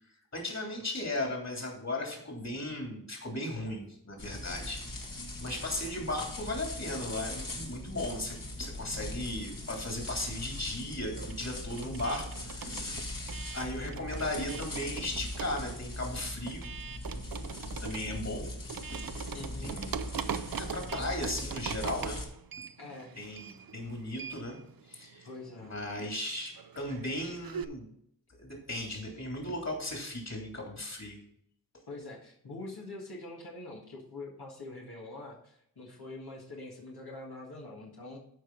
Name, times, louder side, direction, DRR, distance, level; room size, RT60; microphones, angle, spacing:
voice 1, 0.3-5.0 5.4-13.0 13.5-16.6 17.8-18.5 19.6-20.0 20.6-22.2 23.2-24.6 24.9-25.3 25.6-27.9 28.4-31.2, left 1 dB, 45° left, 0 dB, 3.2 m, -36 dB
sound 1, 4.2-22.2, left 1 dB, 60° left, 2.3 m, -40 dB
sound 2, 8.8-10.1 10.3-27.6, right 7 dB, 70° right, 0.6 m, -42 dB
voice 2, 19.3-19.8 22.8-23.2 25.2-25.7 27.2-27.3 31.9-38.2, left 2 dB, 85° left, -3 dB, 2.0 m, -44 dB
13.5 x 5.2 x 4.0 m, 0.71 s
wide cardioid pair, 70°, 37 cm